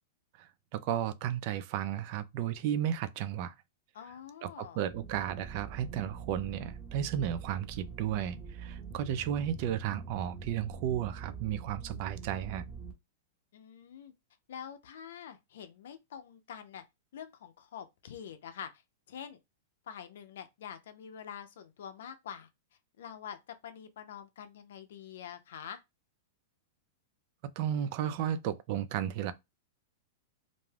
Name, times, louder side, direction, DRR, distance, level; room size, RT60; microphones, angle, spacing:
voice 1, 0.3-3.5 4.4-12.6 27.6-29.3, right 10 dB, 45° right, 0.4 m, -34 dB
voice 2, 3.9-4.8 13.5-14.1 14.5-16.8 17.1-18.8 19.1-19.4 19.9-22.5 23.0-25.8, left 8 dB, 75° left, 0.5 m, -46 dB
sound 1, 4.9-12.9, right 6 dB, 20° right, 0.9 m, -44 dB
2.5 x 2.2 x 3.2 m
supercardioid pair, 155°, 0 cm